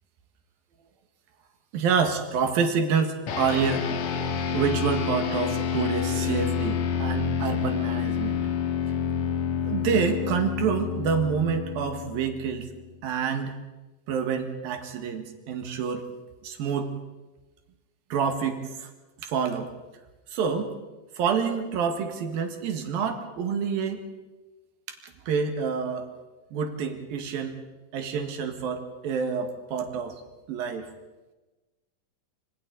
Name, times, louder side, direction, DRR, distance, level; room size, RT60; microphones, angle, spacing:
voice 1, 1.7-3.9 4.5-8.4 9.7-12.7 13.0-13.6 14.1-16.1 16.4-16.9 18.1-18.9 19.2-19.7 20.3-20.7 21.2-24.0 25.0-26.1 26.5-27.6 27.9-30.2 30.5-30.9, right 6 dB, 80° right, 6 dB, 3.6 m, -27 dB
sound 1, 3.3-12.9, left 7 dB, 60° left, 2.2 m, -28 dB
25.5 x 25.5 x 4.1 m, 1.1 s
omnidirectional pair, 4.2 m